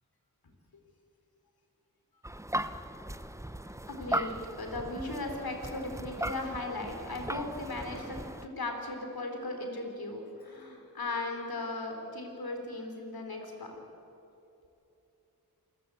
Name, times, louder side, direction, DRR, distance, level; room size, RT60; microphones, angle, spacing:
sound 1, 2.2-8.5, right 1 dB, 10° right, 0.9 m, -38 dB
voice 1, 3.6-13.7, left 2 dB, 70° left, 3 dB, 4.1 m, -37 dB
27.5 x 14.5 x 8.6 m, 2.9 s
cardioid pair, 50°, 38 cm